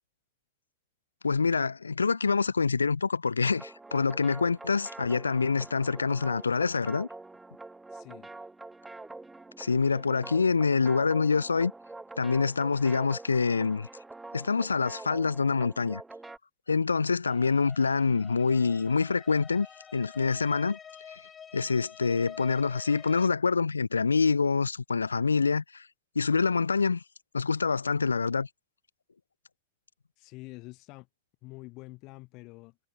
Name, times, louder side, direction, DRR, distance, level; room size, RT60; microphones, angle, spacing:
voice 1, 1.2-7.1 9.6-11.7 12.2-13.9 14.3-16.0 16.7-19.7 19.9-20.8 21.1-21.2 21.5-25.9 26.1-27.0 27.3-28.5, left 4 dB, 75° left, 0.9 m, -26 dB
sound 1, 3.4-16.4, right 3 dB, 10° right, 4.4 m, -45 dB
voice 2, 7.9-8.3 30.2-31.1 31.4-32.8, left 23 dB, 40° left, 2.6 m, -46 dB
sound 2, 17.2-23.3, left 7 dB, 20° left, 2.6 m, -48 dB
figure-of-eight pair, 90°, 0 cm